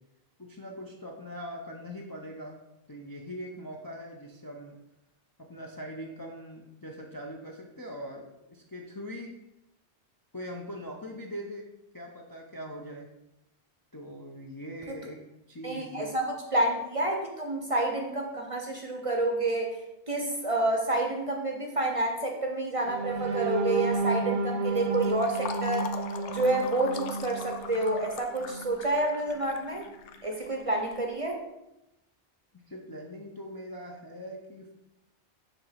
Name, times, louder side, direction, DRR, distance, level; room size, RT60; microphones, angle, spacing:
voice 1, 0.4-2.6 2.9-4.8 5.4-9.3 10.3-11.7 11.9-13.1 13.9-15.2 15.5-16.1 32.7-34.7, equal, 25° left, 0 dB, 0.5 m, -41 dB
voice 2, 15.6-19.8 20.1-25.9 26.3-29.8 30.2-31.4, right 2 dB, 35° right, 1 dB, 0.7 m, -29 dB
sound 1, 22.9-28.8 29.3-29.4 29.8-30.0, right 4 dB, 65° right, 0.9 m, -32 dB
Fill (with liquid), 24.7-31.1, left 7 dB, 90° left, 0.9 m, -42 dB
6.8 x 2.9 x 5.7 m, 0.90 s
omnidirectional pair, 1.1 m